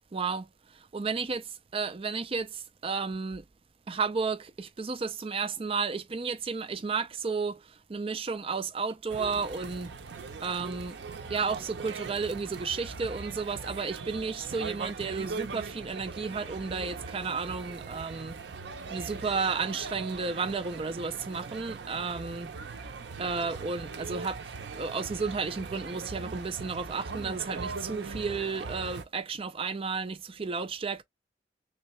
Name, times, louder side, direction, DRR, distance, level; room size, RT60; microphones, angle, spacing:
voice 1, 0.1-0.5 0.7-1.5 1.7-3.4 3.9-9.9 10.4-11.0 11.3-18.4 18.9-22.5 23.2-31.0, right 4 dB, 35° right, 0.5 m, -32 dB
sound 1, 9.1-29.0, right 4 dB, 80° right, 0.6 m, -40 dB
3.2 x 2.8 x 2.9 m
head